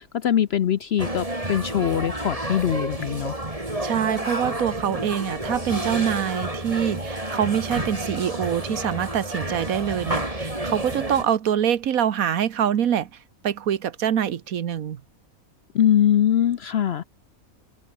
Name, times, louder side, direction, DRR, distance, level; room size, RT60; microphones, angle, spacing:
voice 1, 0.0-3.4 15.7-17.0, left 10 dB, 60° left, 0.7 m, -22 dB
sound 1, 1.0-11.2, right 1 dB, 25° right, 4.7 m, -30 dB
voice 2, 3.8-13.1 13.4-15.0, right 9 dB, 70° right, 1.4 m, -25 dB
open air
omnidirectional pair, 1.5 m